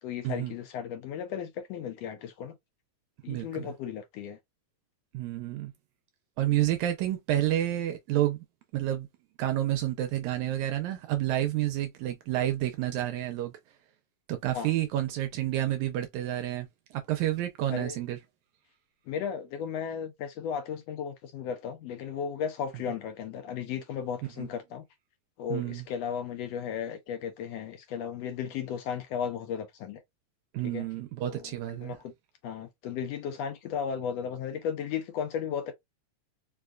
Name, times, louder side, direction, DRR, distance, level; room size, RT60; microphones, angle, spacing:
voice 1, 0.0-2.5 3.2-4.4 14.5-14.7 17.7-18.0 19.1-24.8 25.4-30.0 30.6-30.8 31.2-32.1 32.4-35.7, left 8 dB, 75° left, 1.6 m, -35 dB
voice 2, 3.3-3.7 5.1-5.7 6.4-8.4 8.7-9.1 9.4-13.5 14.3-18.2 24.4-24.5 25.5-25.8 30.5-32.0, right 13 dB, 80° right, 1.8 m, -29 dB
4.7 x 2.2 x 2.4 m
omnidirectional pair, 3.4 m